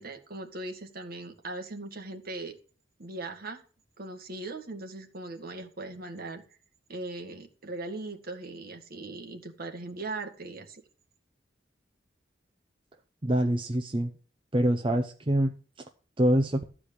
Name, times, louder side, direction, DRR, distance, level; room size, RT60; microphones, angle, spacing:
voice 1, 0.0-2.6 3.0-3.6 4.0-6.4 6.9-10.8, right 2 dB, 55° right, 4 dB, 1.8 m, -39 dB
voice 2, 13.2-14.1 14.5-15.5 16.2-16.6, right 1 dB, 30° right, 4 dB, 0.8 m, -25 dB
13.5 x 4.9 x 8.6 m, 0.40 s
head